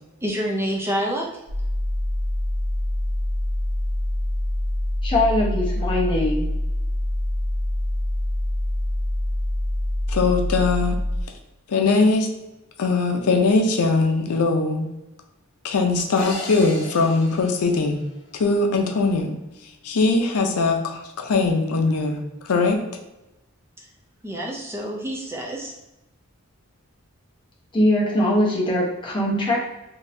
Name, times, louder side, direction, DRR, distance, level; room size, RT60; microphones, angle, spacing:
voice 1, 0.2-1.3 24.2-25.7, equal, 10° right, -2 dB, 0.4 m, -27 dB
sound 1, 1.5-11.2, left 1 dB, 90° right, 0.9 m, -25 dB
voice 2, 5.0-6.5 27.7-29.6, left 1 dB, 20° left, -4 dB, 0.8 m, -21 dB
voice 3, 10.1-11.0 11.7-12.3 12.8-14.9 15.6-18.0 18.3-19.3 19.8-22.8, left 3 dB, 90° left, 3 dB, 0.5 m, -21 dB
sound 2, 16.2-18.5, left 2 dB, 60° left, 1.0 m, -36 dB
3.7 x 2.7 x 2.6 m, 0.96 s
head